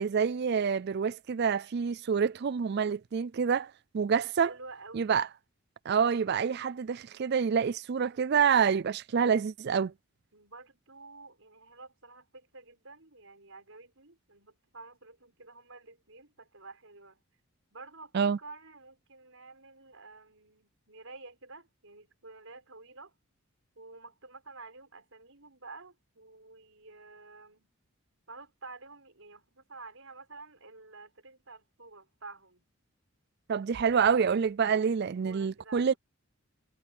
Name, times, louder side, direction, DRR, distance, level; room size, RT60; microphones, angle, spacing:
voice 1, 0.0-4.5 4.9-5.3 5.9-9.9 18.1-18.4 33.5-35.9, right 6 dB, 50° right, 0.4 m, -27 dB
voice 2, 4.4-5.2 10.3-17.2 17.7-23.1 23.7-27.7 28.3-32.6 35.0-36.0, right 3 dB, 65° right, 6.3 m, -50 dB
head